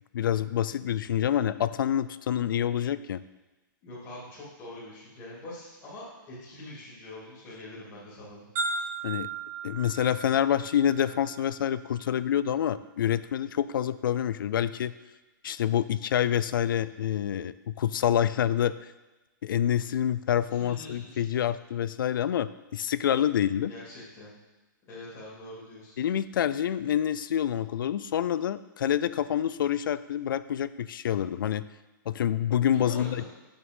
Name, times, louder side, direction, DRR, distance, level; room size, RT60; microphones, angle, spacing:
voice 1, 0.1-3.2 9.0-9.3 9.6-14.9 15.4-18.7 19.4-23.7 26.0-31.6 32.1-33.2, left 10 dB, 75° left, 15 dB, 0.4 m, -27 dB
voice 2, 3.8-8.5 20.6-21.3 23.7-24.3 24.9-25.9 32.7-33.2, left 1 dB, 25° left, -8 dB, 2.5 m, -44 dB
sound 1, 8.6-12.5, right 4 dB, 45° right, 2.3 m, -37 dB
6.3 x 6.1 x 5.4 m, 1.1 s
hypercardioid pair, 160°, 11 cm